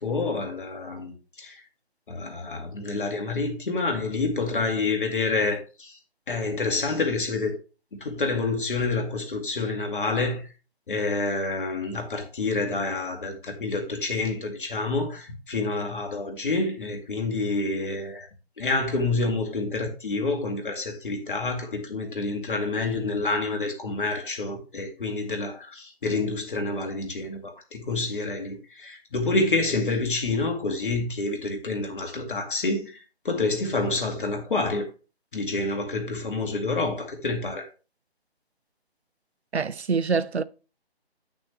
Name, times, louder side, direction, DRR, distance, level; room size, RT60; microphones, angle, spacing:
voice 1, 0.0-1.6 2.1-6.0 6.3-7.5 8.0-10.4 10.9-18.3 18.6-34.9 35.3-37.7, left 3 dB, 50° left, 2.2 m, -28 dB
voice 2, 39.5-40.4, right 5 dB, 80° right, 0.6 m, -25 dB
8.4 x 6.5 x 3.3 m
figure-of-eight pair, 145°, 32 cm